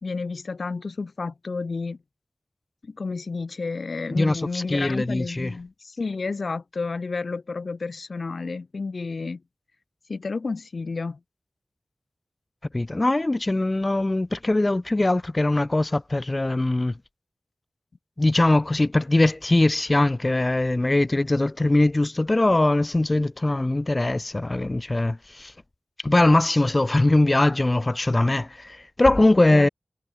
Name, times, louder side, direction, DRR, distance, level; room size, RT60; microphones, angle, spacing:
voice 1, 0.0-2.0 2.8-9.4 10.1-11.2 29.5-29.7, left 4 dB, 75° left, 1.8 m, -31 dB
voice 2, 4.1-5.5 12.7-16.9 18.2-25.5 26.0-29.7, left 2 dB, 35° left, 0.5 m, -21 dB
cardioid pair, 45°, 0 cm